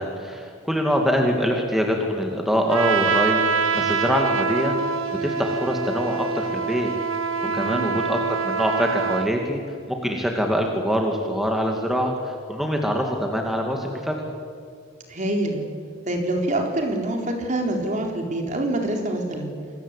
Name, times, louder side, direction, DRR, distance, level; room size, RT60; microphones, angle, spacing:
voice 1, 0.0-4.8 5.2-6.9 7.5-9.6 9.9-14.1, equal, ahead, 1 dB, 2.4 m, -24 dB
Trumpet, 2.7-9.3, right 5 dB, 85° right, 1.5 m, -25 dB
voice 2, 7.4-7.9 15.1-15.6 16.1-19.5, right 1 dB, 40° right, 2 dB, 4.0 m, -26 dB
27.5 x 21.5 x 8.4 m, 2.2 s
head